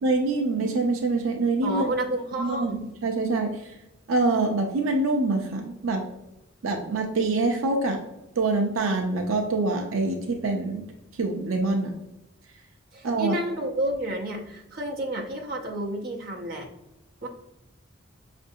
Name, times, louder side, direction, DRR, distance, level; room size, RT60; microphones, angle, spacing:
voice 1, 0.0-1.9 2.4-2.8 3.0-3.5 4.1-6.0 6.6-8.0 8.4-10.8 11.2-11.9 13.0-13.4, right 3 dB, 85° right, 2 dB, 0.5 m, -25 dB
voice 2, 1.6-2.8 12.9-16.7 17.2-17.3, right 1 dB, 50° right, -1 dB, 0.8 m, -30 dB
6.0 x 2.6 x 2.6 m, 0.91 s
head